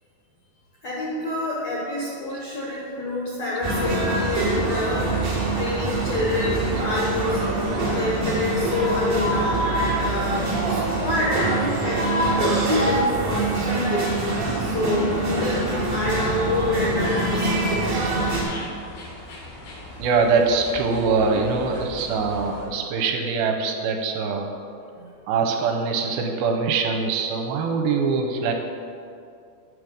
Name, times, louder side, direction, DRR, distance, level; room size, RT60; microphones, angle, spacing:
voice 1, 0.8-14.1 14.6-17.5, left 2 dB, 70° left, -5 dB, 1.6 m, -27 dB
sound 1, 3.6-18.4, right 2 dB, 50° right, 1.1 m, -24 dB
sound 2, 16.8-22.7, left 1 dB, 90° left, 3.6 m, -40 dB
voice 2, 20.0-24.5 25.0-28.5, right 4 dB, 85° right, 3 dB, 2.4 m, -23 dB
8.3 x 6.2 x 5.1 m, 2.4 s
omnidirectional pair, 4.5 m